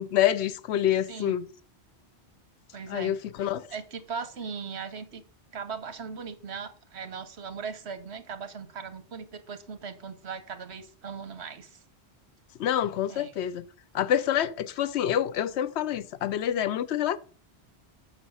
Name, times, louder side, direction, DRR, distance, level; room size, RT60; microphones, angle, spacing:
voice 1, 0.0-1.5 2.9-3.7 12.6-13.7 13.9-17.2, left 11 dB, 85° left, 0.9 m, -27 dB
voice 2, 2.7-5.2 5.5-11.8 13.1-13.3, right 6 dB, 75° right, 1.3 m, -39 dB
6.5 x 5.9 x 5.3 m
omnidirectional pair, 1.1 m